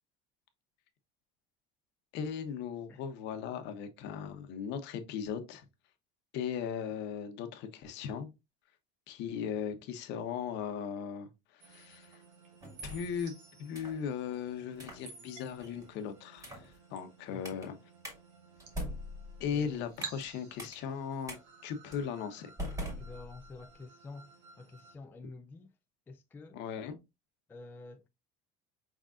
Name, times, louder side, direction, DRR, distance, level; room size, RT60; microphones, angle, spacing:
voice 1, 2.1-5.6 6.3-8.3 9.1-12.2 12.8-13.3 13.6-17.7 19.4-21.4 21.6-22.5 26.5-27.0, left 7 dB, 60° left, 1.0 m, -38 dB
sound 1, 11.6-25.0, right 5 dB, 80° right, 1.6 m, -53 dB
sound 2, 12.6-13.2 13.7-14.0 14.7-15.0 15.6-15.9 16.4-16.7 17.4-17.7 18.0-18.2 18.6-20.3 20.6-20.7 21.3-21.4 21.9-22.1 22.6-23.6, equal, 15° right, 2.2 m, -42 dB
voice 2, 17.3-17.7 19.5-19.9 23.0-25.7 26.1-26.6 27.5-28.1, left 3 dB, 10° left, 0.3 m, -49 dB
5.3 x 3.7 x 2.5 m
cardioid pair, 135°, 21 cm